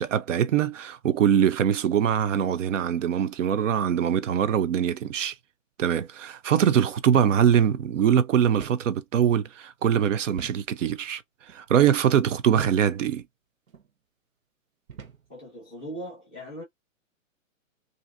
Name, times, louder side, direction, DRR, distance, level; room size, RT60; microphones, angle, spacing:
voice 1, 0.0-5.3 5.8-11.2 11.5-13.2, right 9 dB, 65° right, 0.6 m, -23 dB
sound 1, 7.1-7.4 7.8-7.9 8.6-8.9 10.4-10.7 11.4-11.6 12.6-12.9 13.7-13.9 14.9-15.3, right 6 dB, 85° right, 1.0 m, -41 dB
voice 2, 15.3-16.6, right 1 dB, 10° right, 0.5 m, -39 dB
3.2 x 2.6 x 2.6 m
hypercardioid pair, 180°, 40 cm